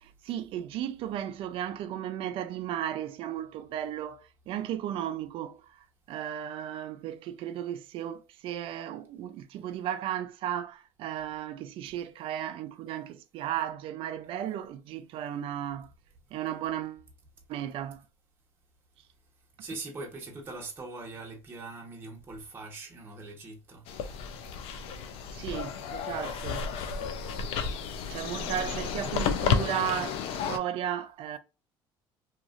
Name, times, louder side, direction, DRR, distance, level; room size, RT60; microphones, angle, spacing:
voice 1, 0.0-5.6 6.1-15.9 16.3-17.0 17.5-18.0 25.3-26.7 28.1-30.2 30.5-31.4, right 10 dB, 65° right, 0.4 m, -35 dB
voice 2, 19.6-23.8 28.1-28.2, right 3 dB, 25° right, 0.9 m, -42 dB
sound 1, 23.9-30.6, left 6 dB, 70° left, 0.5 m, -32 dB
2.9 x 2.4 x 2.4 m
cardioid pair, 115°, 10 cm